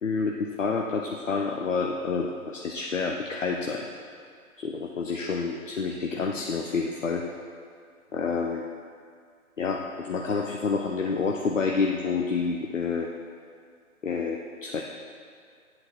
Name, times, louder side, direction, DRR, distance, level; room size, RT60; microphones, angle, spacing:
voice 1, 0.0-3.9 4.6-7.2 8.1-8.6 9.6-13.1 14.0-14.8, left 4 dB, 60° left, 1 dB, 0.8 m, -28 dB
10.5 x 7.7 x 4.5 m, 2.2 s
figure-of-eight pair, 140°, 43 cm